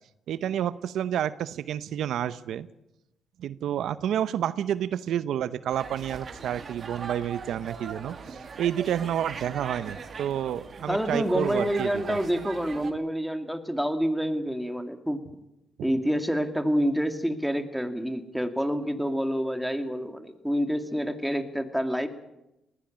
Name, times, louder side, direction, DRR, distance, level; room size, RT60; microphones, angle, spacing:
voice 1, 0.3-2.7 3.4-12.2 15.8-15.9, right 10 dB, 75° right, 15 dB, 0.7 m, -29 dB
sound 1, 5.7-12.9, right 5 dB, 45° right, 2.3 m, -40 dB
voice 2, 10.9-15.2 15.8-22.1, equal, ahead, 7 dB, 2.4 m, -28 dB
19.5 x 16.0 x 8.8 m, 0.89 s
cardioid pair, 90°, 0 cm